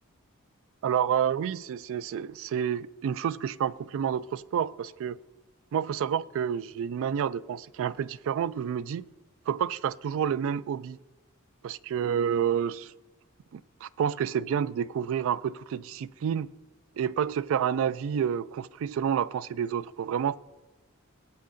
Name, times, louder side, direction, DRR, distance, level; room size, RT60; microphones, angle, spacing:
voice 1, 0.8-5.2 5.7-9.0 9.5-11.0 11.6-12.9 13.5-16.5 17.0-20.4, right 8 dB, 65° right, 0.3 m, -29 dB
17.0 x 8.3 x 2.5 m
head